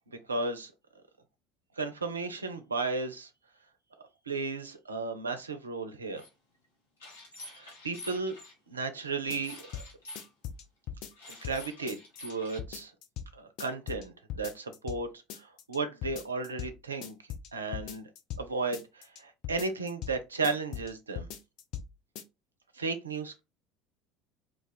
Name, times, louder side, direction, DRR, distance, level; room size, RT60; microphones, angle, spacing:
voice 1, 0.1-0.7 1.8-3.3 4.3-6.2 7.5-8.4 8.7-9.7 11.3-12.9 13.3-15.1 15.4-17.2 17.5-18.1 18.4-21.3 22.8-23.4, right 3 dB, 80° right, 0.4 m, -34 dB
sound 1, 6.2-6.3 7.0-8.5 9.4-10.3 11.1-12.6, left 2 dB, 70° left, 0.9 m, -48 dB
sound 2, 9.3-9.9 10.2-11.6 11.9-12.3 12.6-13.3 13.6-14.0 14.3-15.0 15.3-15.8 16.0-16.7 17.0-18.4 18.7-19.2 19.4-20.2 20.4-20.9 21.2-21.9 22.2-22.3, left 9 dB, 50° left, 0.5 m, -39 dB
2.4 x 2.3 x 4.0 m
figure-of-eight pair, 65°, 0 cm